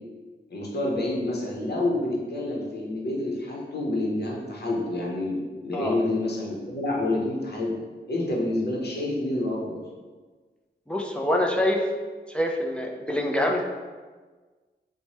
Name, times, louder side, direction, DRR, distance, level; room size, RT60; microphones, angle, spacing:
voice 1, 0.5-7.8 8.1-9.8, left 2 dB, 60° left, -2 dB, 0.9 m, -28 dB
voice 2, 10.9-11.8 12.3-13.6, left 1 dB, 5° left, 0 dB, 0.5 m, -25 dB
3.0 x 2.2 x 4.1 m, 1.4 s
cardioid pair, 60°, 19 cm